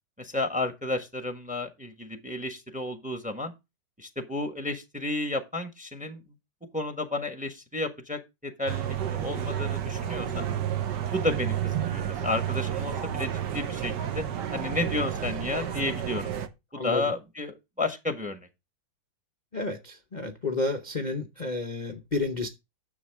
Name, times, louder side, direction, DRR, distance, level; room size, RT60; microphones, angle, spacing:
voice 1, 0.2-3.5 4.0-6.2 6.7-10.5 11.1-14.2 14.5-16.3 16.7-18.5, left 2 dB, 5° right, 1.0 m, -32 dB
sound 1, 8.7-16.5, right 9 dB, 60° right, 1.5 m, -31 dB
voice 2, 19.5-22.5, left 3 dB, 65° left, 0.4 m, -31 dB
9.9 x 7.2 x 3.5 m
omnidirectional pair, 2.2 m